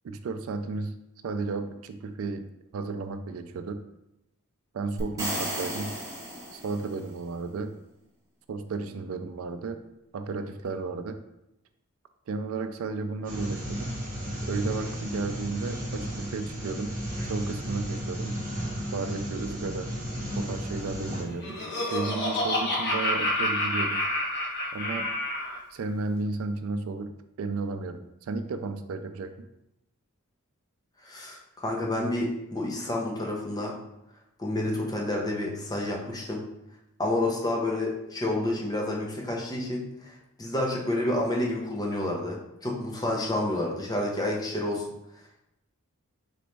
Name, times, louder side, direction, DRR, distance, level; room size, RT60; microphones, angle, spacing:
voice 1, 0.0-0.9 1.2-2.5 2.7-3.8 4.7-6.0 6.5-7.8 8.5-9.8 10.1-11.2 12.3-13.8 14.5-16.9 17.3-18.4 18.9-19.9 20.4-24.0 24.7-25.1 25.7-29.3, right 3 dB, 75° right, 9 dB, 0.3 m, -33 dB
sound 1, 5.0-7.1, right 1 dB, 15° right, 1.4 m, -34 dB
sound 2, 13.2-21.2, equal, 40° right, 1.0 m, -34 dB
Laughter, 21.1-25.6, left 1 dB, 50° left, 1.0 m, -28 dB
voice 2, 31.0-33.8 34.4-36.4 37.0-44.8, left 1 dB, 20° left, -2 dB, 0.7 m, -29 dB
4.1 x 3.0 x 3.3 m, 0.86 s
head